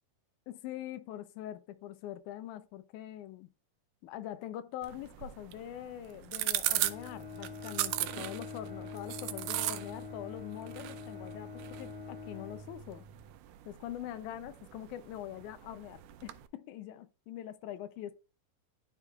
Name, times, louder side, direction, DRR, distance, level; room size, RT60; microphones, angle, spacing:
voice 1, 0.5-3.5 4.0-13.1 13.7-18.2, left 12 dB, 80° left, 1.9 m, -43 dB
sound 1, 4.8-16.5, right 15 dB, 80° right, 2.0 m, -39 dB
Bowed string instrument, 6.6-13.3, left 4 dB, 40° left, 4.6 m, -45 dB
12.0 x 5.2 x 2.4 m
omnidirectional pair, 4.0 m